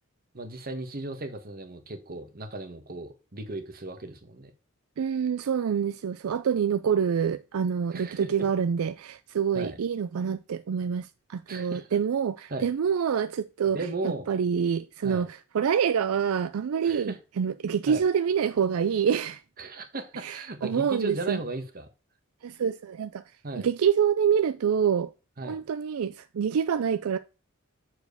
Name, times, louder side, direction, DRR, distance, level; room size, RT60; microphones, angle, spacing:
voice 1, 0.3-4.5 7.9-8.5 9.5-9.8 11.5-11.9 12.5-12.7 13.7-14.3 15.0-15.2 16.8-17.2 17.9-18.0 19.6-21.9 23.4-23.7 25.4-25.6, right 2 dB, 45° right, 1.3 m, -36 dB
voice 2, 5.0-13.8 14.0-19.4 20.2-21.4 22.4-23.2 23.6-25.1 25.4-27.2, right 7 dB, 75° right, 0.4 m, -26 dB
6.9 x 4.6 x 6.7 m
head